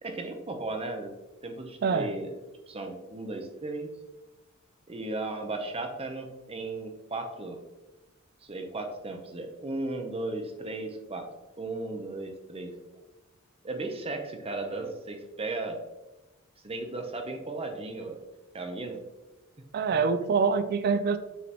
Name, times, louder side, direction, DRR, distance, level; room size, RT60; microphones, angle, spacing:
voice 1, 0.0-1.1 1.4-2.3 2.7-3.9 4.9-7.6 8.4-11.3 11.6-12.7 13.6-15.8 16.6-18.2 18.5-19.0, right 2 dB, 30° right, 5 dB, 0.8 m, -35 dB
voice 2, 19.7-21.2, right 5 dB, 45° right, 12 dB, 0.3 m, -25 dB
6.5 x 5.1 x 3.0 m, 1.0 s
head